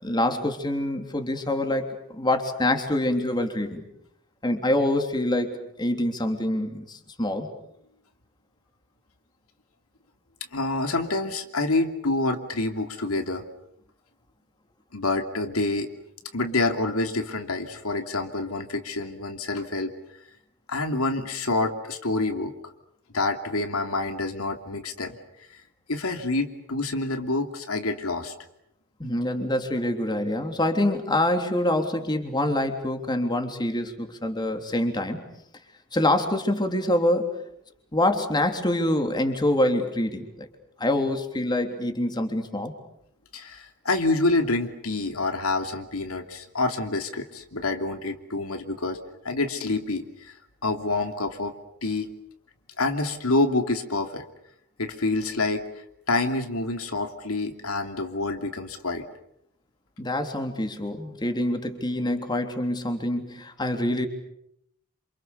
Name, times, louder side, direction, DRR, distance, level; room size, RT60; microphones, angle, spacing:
voice 1, 0.0-3.8 4.4-7.5 29.0-35.2 35.9-37.3 37.9-40.5 40.8-42.7 60.0-64.1, left 1 dB, 20° left, 5 dB, 3.4 m, -25 dB
voice 2, 10.5-13.4 14.9-15.9 16.3-19.9 20.7-22.5 23.1-25.2 25.5-25.6 25.9-28.3 43.3-49.0 49.2-50.3 50.6-51.5 51.8-52.1 52.8-54.2 54.8-59.0, left 2 dB, 80° left, 6 dB, 2.9 m, -27 dB
28.5 x 28.0 x 7.0 m, 0.76 s
head